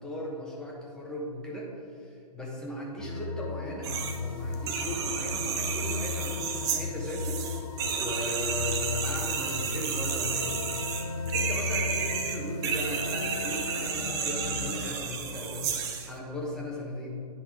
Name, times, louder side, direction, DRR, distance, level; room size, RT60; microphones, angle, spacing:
voice 1, 0.0-1.7 2.0-7.4 8.0-10.6 11.3-15.8 16.1-17.1, left 1 dB, 5° left, -3 dB, 1.1 m, -37 dB
sound 1, 3.0-14.9, left 4 dB, 55° left, 0.8 m, -35 dB
sound 2, 3.8-4.2 4.5-16.1, right 6 dB, 15° right, 0.5 m, -32 dB
10.0 x 5.6 x 3.8 m, 2.3 s
figure-of-eight pair, 120°, 20 cm